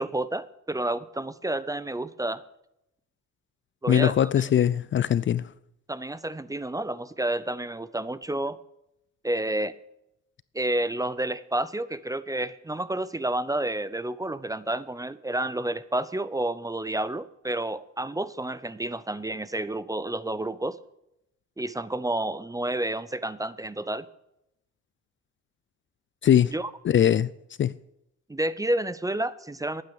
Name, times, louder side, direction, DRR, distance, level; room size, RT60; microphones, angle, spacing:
voice 1, 0.0-2.4 3.8-4.3 5.9-8.6 9.2-9.7 10.5-20.8 21.6-24.1 26.5-26.7 28.3-29.8, right 1 dB, 10° right, 0.6 m, -30 dB
voice 2, 3.9-5.4 26.2-26.5 26.8-27.3 27.6-27.7, left 10 dB, 40° left, 0.4 m, -21 dB
11.5 x 9.1 x 7.0 m
cardioid pair, 90°, 30 cm